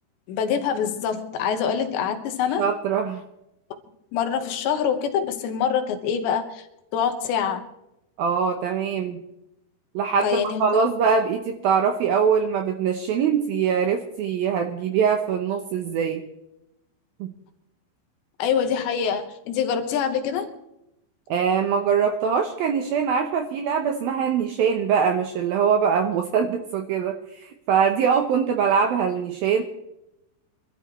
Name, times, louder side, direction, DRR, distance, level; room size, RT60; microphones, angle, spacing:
voice 1, 0.3-2.7 4.1-6.7 6.9-7.6 10.2-10.7 18.4-20.5, left 7 dB, 80° left, 7 dB, 3.4 m, -25 dB
voice 2, 2.6-3.2 8.2-9.2 9.9-16.2 17.2-17.3 21.3-29.6, right 6 dB, 75° right, 5 dB, 2.3 m, -23 dB
25.0 x 12.5 x 3.2 m, 0.86 s
omnidirectional pair, 5.2 m